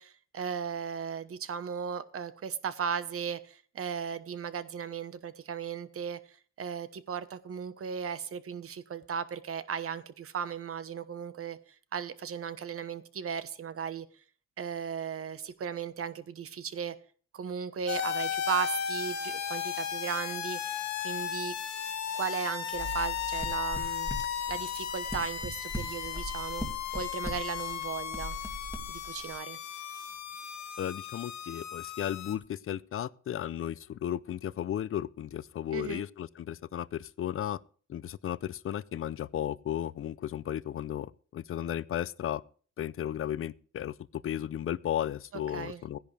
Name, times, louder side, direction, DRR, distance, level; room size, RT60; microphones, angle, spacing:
voice 1, 0.0-11.6 11.9-14.1 14.6-16.9 17.3-20.6 21.0-21.5 22.1-26.6 26.9-28.3 28.9-29.6 35.7-36.1 45.5-45.8, right 7 dB, 50° right, 1.1 m, -36 dB
sound 1, 17.9-32.3, left 9 dB, 65° left, 1.4 m, -35 dB
sound 2, 22.7-29.4, equal, 10° right, 2.3 m, -41 dB
voice 2, 30.8-37.6 37.9-42.4 42.8-46.0, left 11 dB, 45° left, 0.6 m, -34 dB
15.5 x 10.5 x 3.4 m
cardioid pair, 90°, 30 cm